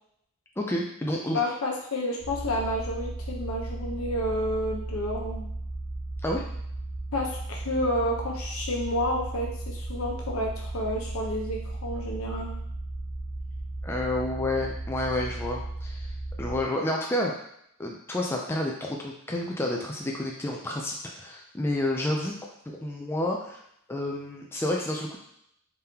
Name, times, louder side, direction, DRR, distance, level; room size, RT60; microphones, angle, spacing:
voice 1, 0.6-1.4 6.2-6.4 13.8-16.1 16.4-17.3 17.8-22.3 22.7-23.6 23.9-25.2, left 1 dB, 10° left, -1 dB, 0.4 m, -30 dB
voice 2, 1.3-5.5 7.1-12.5, left 1 dB, 85° left, -1 dB, 0.9 m, -30 dB
sound 1, 2.2-16.6, right 2 dB, 75° right, 1.1 m, -35 dB
3.6 x 3.6 x 2.8 m, 0.72 s
head